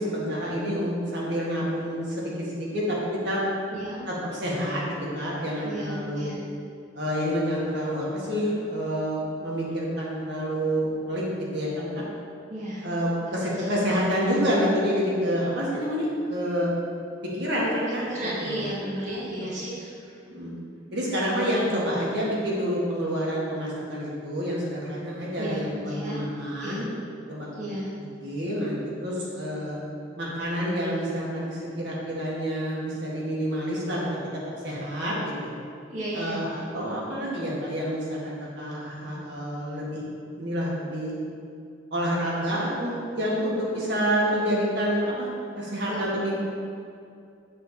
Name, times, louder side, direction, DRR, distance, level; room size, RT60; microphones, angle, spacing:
voice 1, 0.0-3.0 3.2-3.4 4.1-6.3 7.0-11.2 11.5-12.0 12.8-16.7 17.3-18.1 18.4-18.6 19.4-19.5 20.3-20.6 20.9-26.8 27.3-27.8 28.2-29.8 30.2-34.1 34.6-35.5 36.1-40.0 40.4-41.1 41.9-45.3 45.5-46.3, equal, 60° right, -5 dB, 1.9 m, -28 dB
voice 2, 3.7-4.0 5.6-6.4 12.5-12.9 13.4-13.7 18.1-20.2 25.4-26.2 26.6-26.8 27.6-27.9 35.9-36.4 45.9-46.1, right 1 dB, 40° right, -9 dB, 1.7 m, -34 dB
7.5 x 4.3 x 6.9 m, 2.4 s
head